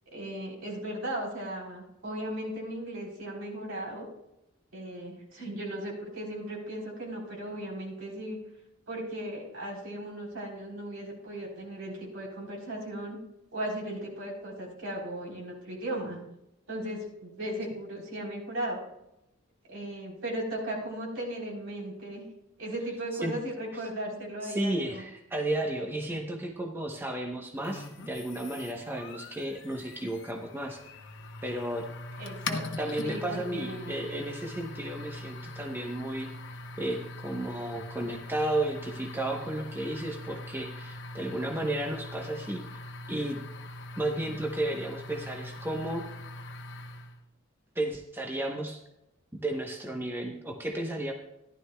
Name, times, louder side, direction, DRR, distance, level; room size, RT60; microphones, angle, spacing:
voice 1, 0.1-4.1 4.7-8.4 8.9-13.2 13.5-16.2 16.7-18.8 19.7-22.3 22.6-25.0 32.2-33.9, right 1 dB, 70° right, -3 dB, 3.6 m, -37 dB
voice 2, 24.4-30.8 31.4-31.9 32.8-36.3 36.8-42.6 43.1-43.4 44.0-46.0 47.7-48.8 49.4-51.1, right 1 dB, 10° right, 1 dB, 0.8 m, -33 dB
sound 1, 27.6-47.2, left 2 dB, 60° left, 0.9 m, -42 dB
14.5 x 11.5 x 2.2 m, 0.87 s
head